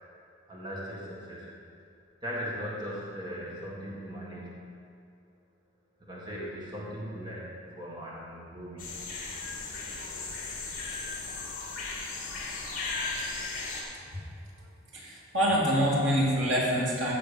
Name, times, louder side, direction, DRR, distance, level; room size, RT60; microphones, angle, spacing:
voice 1, 0.5-1.5 2.2-4.7 6.0-9.0, equal, 25° right, -6 dB, 1.9 m, -39 dB
sound 1, 8.8-13.8, left 3 dB, 45° left, 2.1 m, -36 dB
voice 2, 14.9-17.1, equal, 85° right, -5 dB, 2.8 m, -26 dB
14.5 x 6.5 x 5.2 m, 2.4 s
head